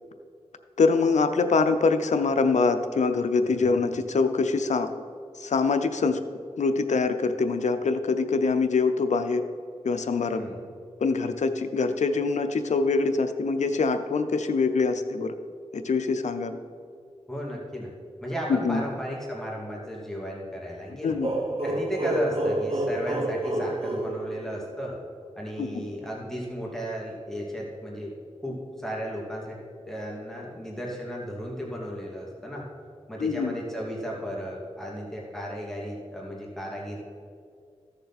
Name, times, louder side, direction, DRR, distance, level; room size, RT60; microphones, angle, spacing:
voice 1, 0.8-4.9 5.4-6.2 6.6-9.4 9.8-10.4 11.0-15.3 15.7-16.6 18.5-18.8 21.0-21.3 25.6-25.8 33.2-33.5, left 4 dB, 90° left, 8 dB, 0.6 m, -24 dB
voice 2, 3.4-3.8 10.3-10.6 17.3-17.9 18.2-21.2 21.6-24.9 25.4-28.1 28.4-29.6 29.9-32.6 33.1-37.0, equal, 5° left, -4 dB, 2.6 m, -34 dB
sound 1, 21.2-24.9, right 1 dB, 55° right, 1.3 m, -28 dB
14.5 x 6.7 x 4.2 m, 2.3 s
cardioid pair, 55°, 12 cm